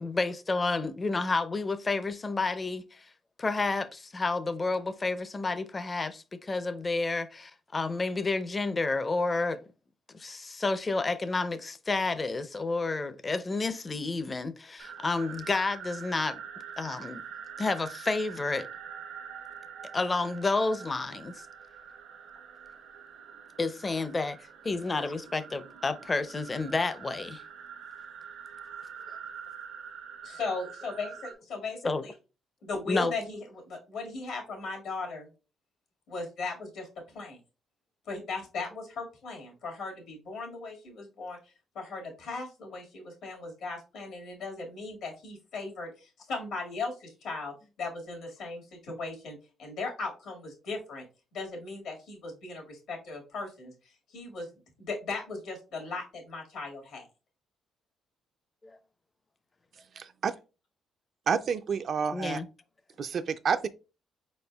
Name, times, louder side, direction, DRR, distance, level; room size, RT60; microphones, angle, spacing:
voice 1, 0.0-3.1 3.4-9.6 10.1-16.4 16.8-17.2 17.6-18.7 19.9-21.4 23.6-24.4 24.6-27.4 31.8-32.0 32.9-33.1 58.6-58.8 62.1-62.5, left 3 dB, 30° left, 0.5 m, -30 dB
sound 1, 14.8-31.3, right 7 dB, 85° right, 0.9 m, -45 dB
voice 2, 30.2-32.1 32.6-35.3 36.1-36.9 37.1-37.4 38.1-41.4 41.7-51.1 51.3-53.7 54.1-54.5 54.8-57.1, left 3 dB, 80° left, 1.8 m, -37 dB
voice 3, 60.0-60.3 61.3-62.4 63.0-63.7, right 6 dB, 55° right, 0.3 m, -29 dB
4.7 x 4.2 x 2.3 m
cardioid pair, 90°, 0 cm